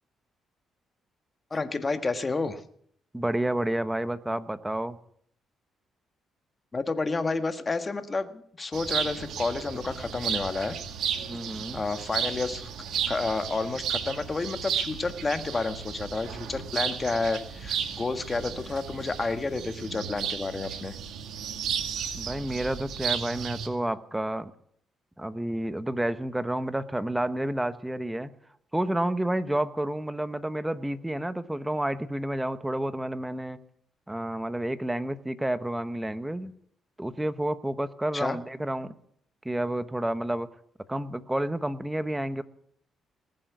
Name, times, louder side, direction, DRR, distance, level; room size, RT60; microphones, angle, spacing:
voice 1, 1.5-2.6 6.7-10.8 11.7-12.7 13.1-20.9 38.1-38.4, left 3 dB, 30° left, 9 dB, 1.5 m, -30 dB
voice 2, 3.1-5.0 11.2-11.8 22.1-24.5 25.2-28.3 28.7-33.6 34.1-36.5 37.0-39.0 39.4-40.5 40.9-42.4, right 1 dB, 10° right, 12 dB, 1.0 m, -30 dB
sound 1, 8.7-23.7, right 8 dB, 75° right, 2.0 m, -34 dB
20.0 x 7.5 x 9.5 m, 0.65 s
cardioid pair, 90°, 0 cm